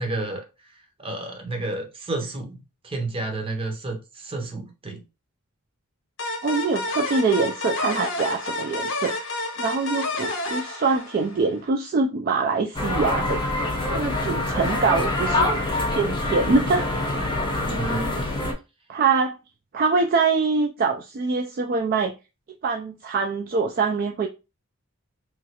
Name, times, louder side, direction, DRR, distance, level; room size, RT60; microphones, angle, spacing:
voice 1, 0.0-5.0 17.7-18.5, right 2 dB, 25° right, 0.7 m, -31 dB
sound 1, 6.2-11.6, left 2 dB, 60° left, 0.7 m, -30 dB
voice 2, 6.4-9.3 9.6-13.4 13.9-15.5 15.9-16.8 17.7-18.2 18.9-19.3 19.7-22.1 22.6-24.3, right 4 dB, 40° right, 0.3 m, -24 dB
sound 2, 12.7-18.5, left 2 dB, 20° left, 0.6 m, -25 dB
3.1 x 2.4 x 2.8 m
head